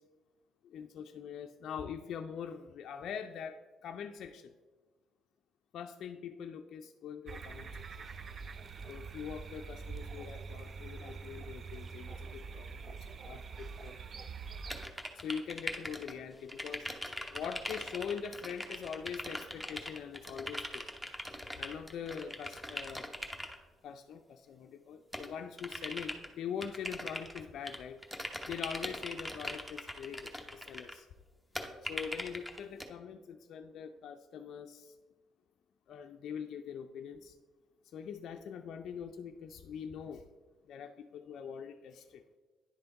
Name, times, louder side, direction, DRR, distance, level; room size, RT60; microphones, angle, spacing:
voice 1, 0.7-4.5 5.7-7.7 8.9-13.0 13.2-14.0 15.2-16.9 17.3-20.8 21.6-23.1 23.8-28.0 28.5-31.1 31.8-34.9 35.9-37.3 37.9-40.3 40.7-42.4, left 7 dB, 65° left, 5 dB, 0.3 m, -43 dB
sound 1, 7.3-14.9, right 5 dB, 45° right, 0.4 m, -45 dB
sound 2, 14.7-16.2 16.5-23.6 25.1-26.3 26.6-27.8 28.0-30.9 31.5-32.9, equal, 5° right, 0.9 m, -41 dB
10.0 x 3.4 x 3.9 m, 1.4 s
supercardioid pair, 70°, 0 cm